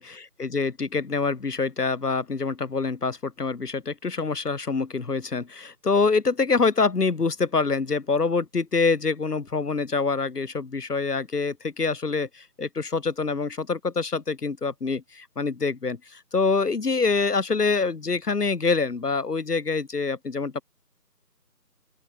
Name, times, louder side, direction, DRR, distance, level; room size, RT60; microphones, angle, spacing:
voice 1, 0.0-20.6, left 4 dB, 70° left, 0.9 m, -25 dB
open air
figure-of-eight pair, 180°, 49 cm